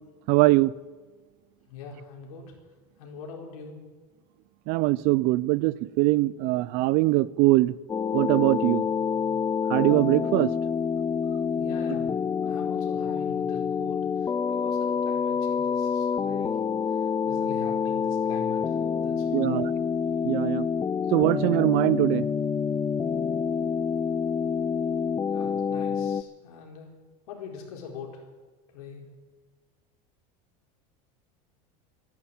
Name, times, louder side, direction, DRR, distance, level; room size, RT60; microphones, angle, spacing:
voice 1, 0.3-0.7 4.7-7.8 8.1-8.9 9.7-10.5 19.3-19.7 20.2-20.7 21.1-22.3, right 19 dB, 55° right, 20 dB, 0.6 m, -22 dB
voice 2, 1.7-2.5 3.0-3.8 8.8-9.4 10.5-10.8 11.5-12.1 12.4-16.6 16.9-19.6 25.3-26.9 27.3-28.2 28.7-29.1, left 5 dB, 85° left, 1 dB, 4.5 m, -43 dB
sound 1, 7.9-26.2, left 6 dB, 15° left, 0.4 m, -27 dB
14.0 x 11.0 x 8.9 m, 1.3 s
supercardioid pair, 135°, 18 cm